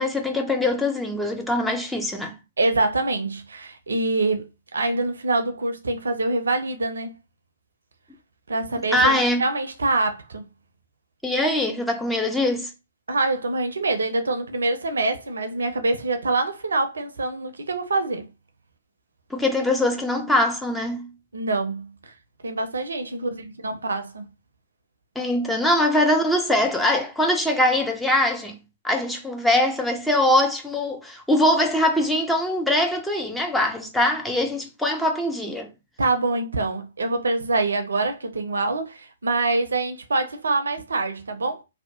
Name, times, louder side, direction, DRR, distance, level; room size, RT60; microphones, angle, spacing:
voice 1, 0.0-2.4 8.9-9.4 11.2-12.7 19.3-21.1 25.2-28.6 28.8-35.7, left 1 dB, 5° left, 0.4 m, -22 dB
voice 2, 2.6-7.1 8.5-10.4 13.1-18.3 21.3-22.1 22.4-24.2 36.0-41.6, right 2 dB, 65° right, 0.5 m, -25 dB
2.7 x 2.1 x 2.6 m
figure-of-eight pair, 120°, 0 cm